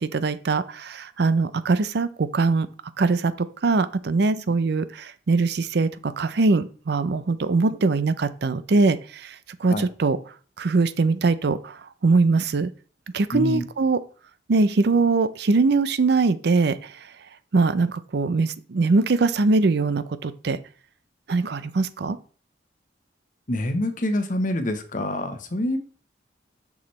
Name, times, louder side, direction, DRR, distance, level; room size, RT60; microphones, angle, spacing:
voice 1, 0.0-2.7 3.0-3.3 3.6-10.2 10.6-12.7 13.1-14.0 14.5-17.1 17.5-20.6 21.3-22.2, right 3 dB, 60° right, 13 dB, 0.5 m, -22 dB
voice 2, 13.3-13.6 23.5-25.8, left 1 dB, 45° left, 7 dB, 1.0 m, -26 dB
6.9 x 6.1 x 3.2 m, 0.40 s
head